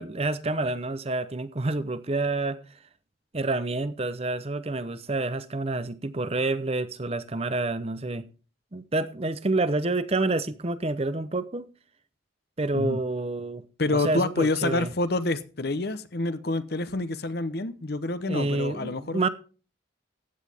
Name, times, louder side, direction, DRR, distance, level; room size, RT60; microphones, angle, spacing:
voice 1, 0.0-2.6 3.3-8.3 8.7-11.7 12.6-13.6 13.9-14.9 18.3-19.3, right 2 dB, 30° right, 0.7 m, -28 dB
voice 2, 13.8-19.2, left 2 dB, 55° left, 0.9 m, -27 dB
15.0 x 9.7 x 3.5 m
head